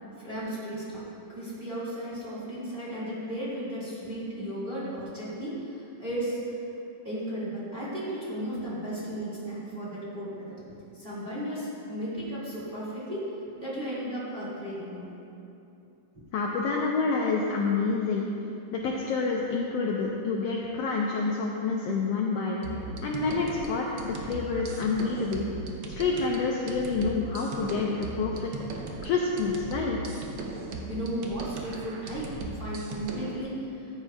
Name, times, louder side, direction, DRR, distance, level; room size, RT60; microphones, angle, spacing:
voice 1, 0.2-6.6 7.0-10.6 10.9-13.3 13.6-15.1 16.7-16.8 30.6-33.9, right 1 dB, 20° right, -9 dB, 1.9 m, -35 dB
voice 2, 16.3-18.2 18.7-25.4 25.9-30.0, left 4 dB, 75° left, -2 dB, 1.5 m, -28 dB
sound 1, 22.6-33.4, right 3 dB, 80° right, 1.1 m, -38 dB
14.0 x 9.0 x 2.4 m, 2.8 s
omnidirectional pair, 3.4 m